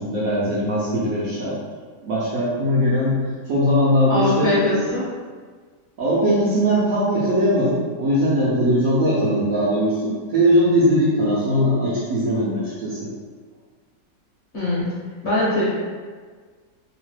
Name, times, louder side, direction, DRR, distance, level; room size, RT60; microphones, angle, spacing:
voice 1, 0.0-1.6 2.0-3.2 3.5-4.5 6.0-13.1, equal, 70° right, -7 dB, 0.8 m, -20 dB
voice 2, 4.1-5.1 14.5-14.9 15.2-15.6, left 1 dB, 50° left, -10 dB, 0.9 m, -21 dB
3.0 x 2.0 x 3.1 m, 1.5 s
omnidirectional pair, 1.9 m